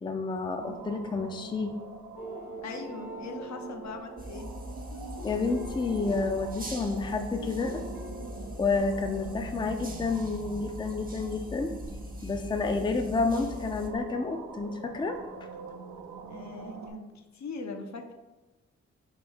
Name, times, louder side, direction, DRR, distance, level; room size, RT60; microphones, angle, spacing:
voice 1, 0.0-1.8 5.2-7.8 8.6-11.7 12.2-15.2, left 3 dB, 15° left, 6 dB, 0.4 m, -30 dB
sound 1, 0.6-16.9, right 5 dB, 70° right, 0.6 m, -45 dB
sound 2, 2.1-7.0 7.3-8.5, left 1 dB, 85° left, 0.9 m, -44 dB
voice 2, 2.6-4.5 16.3-18.1, left 4 dB, 65° left, 4 dB, 0.6 m, -41 dB
sound 3, 4.2-13.9, left 1 dB, 30° right, 0.8 m, -42 dB
4.8 x 2.6 x 3.4 m, 1.1 s
cardioid pair, 45°, 30 cm